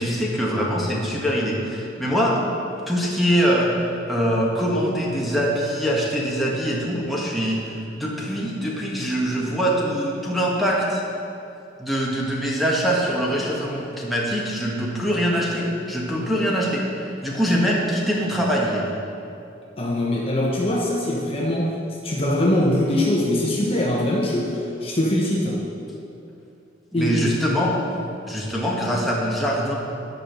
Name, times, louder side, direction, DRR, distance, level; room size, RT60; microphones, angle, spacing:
voice 1, 0.0-2.4 2.9-11.0 11.8-18.9 26.9-27.8 28.3-29.7, equal, ahead, -4 dB, 1.5 m, -23 dB
voice 2, 19.8-21.7 22.0-25.6 26.9-27.2, left 1 dB, 30° left, -3 dB, 1.0 m, -22 dB
11.0 x 5.6 x 6.8 m, 2.7 s
head